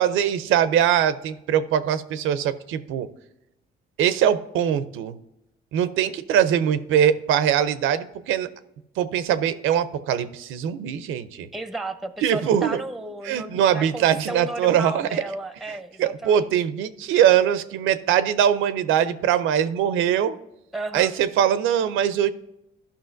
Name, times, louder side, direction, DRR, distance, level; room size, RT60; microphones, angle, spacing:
voice 1, 0.0-3.1 4.0-5.2 5.7-8.5 9.0-11.5 12.2-12.8 13.2-15.2 15.7-20.4 20.9-22.3, right 9 dB, 85° right, 14 dB, 0.5 m, -22 dB
voice 2, 11.5-16.6 20.7-21.2, right 2 dB, ahead, 10 dB, 0.6 m, -34 dB
12.5 x 5.7 x 2.5 m, 0.89 s
cardioid pair, 90°, 20 cm